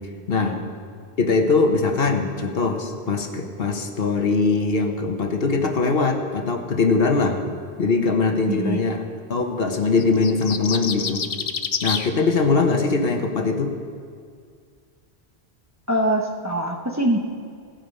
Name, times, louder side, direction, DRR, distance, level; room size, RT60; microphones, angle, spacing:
voice 1, 0.3-0.6 1.2-7.4 7.8-9.0 9.3-11.2 11.8-13.7, left 4 dB, 65° left, 4 dB, 1.2 m, -21 dB
voice 2, 8.5-8.8 15.9-17.2, right 1 dB, 15° right, 1 dB, 0.9 m, -23 dB
sound 1, 10.0-12.1, left 6 dB, 45° left, 0.5 m, -27 dB
15.0 x 9.0 x 5.4 m, 2.1 s
omnidirectional pair, 1.1 m